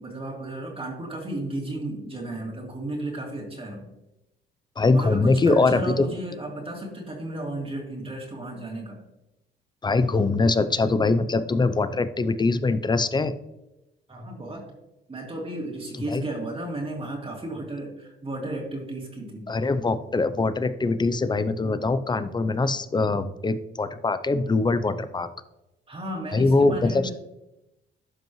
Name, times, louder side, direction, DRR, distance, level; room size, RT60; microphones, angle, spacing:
voice 1, 0.0-3.9 4.9-9.0 14.1-14.7 15.1-19.5 25.9-27.1, right 1 dB, 30° right, -1 dB, 2.4 m, -34 dB
voice 2, 4.8-6.1 9.8-13.3 16.1-16.2 19.5-25.3 26.3-27.1, left 3 dB, 20° left, 12 dB, 0.6 m, -23 dB
12.0 x 5.2 x 3.1 m, 0.92 s
cardioid pair, 90°, 20 cm